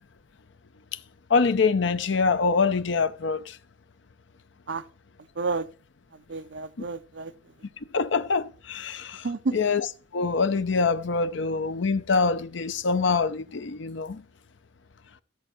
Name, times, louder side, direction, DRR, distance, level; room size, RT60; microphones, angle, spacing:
voice 1, 1.3-3.6 7.9-9.3 9.5-9.9 10.1-14.2, left 4 dB, 65° left, 0.6 m, -24 dB
voice 2, 5.2-5.7 6.1-7.5 9.2-9.6, right 4 dB, 60° right, 0.7 m, -31 dB
13.5 x 4.5 x 7.5 m
head